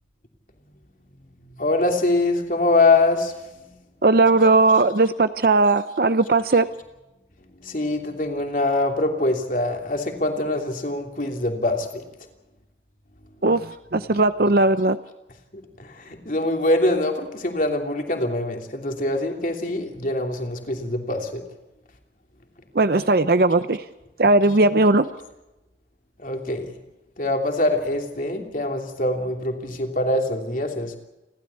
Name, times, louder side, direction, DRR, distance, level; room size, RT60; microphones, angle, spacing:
voice 1, 1.6-3.7 7.6-11.9 15.8-21.4 26.2-26.7 27.2-30.9, left 2 dB, 45° left, 3 dB, 3.1 m, -24 dB
voice 2, 4.0-6.7 13.4-13.7 13.9-15.0 22.7-23.8 24.2-25.1, right 2 dB, 55° right, 12 dB, 0.7 m, -18 dB
30.0 x 13.0 x 8.3 m, 1.0 s
head